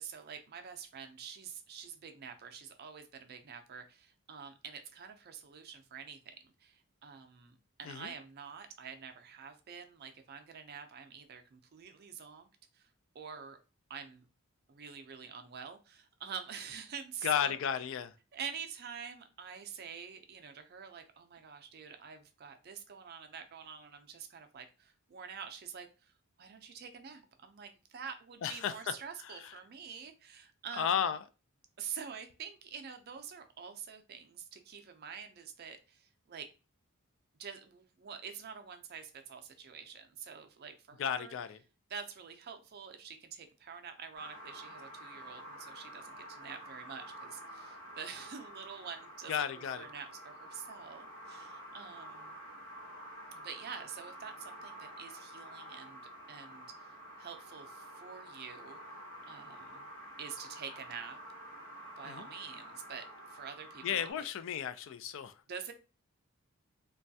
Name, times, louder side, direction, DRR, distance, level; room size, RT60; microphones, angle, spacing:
voice 1, 0.0-12.5 12.7-12.9 13.1-13.6 13.9-14.3 14.7-17.6 18.3-26.1 26.4-31.0 31.8-36.5 37.4-41.3 41.9-49.4 49.7-52.3 53.4-58.8 59.3-59.9 60.2-61.2 62.0-64.1 65.5-65.7, right 7 dB, 50° right, 0.4 m, -47 dB
voice 2, 17.2-18.1 28.4-28.9 29.2-29.5 30.8-31.2 41.0-41.6 49.3-49.9 62.0-62.3 63.8-65.3, left 8 dB, 65° left, 0.3 m, -34 dB
sound 1, 44.1-64.1, right 1 dB, 80° left, 1.0 m, -49 dB
3.1 x 2.3 x 2.6 m
head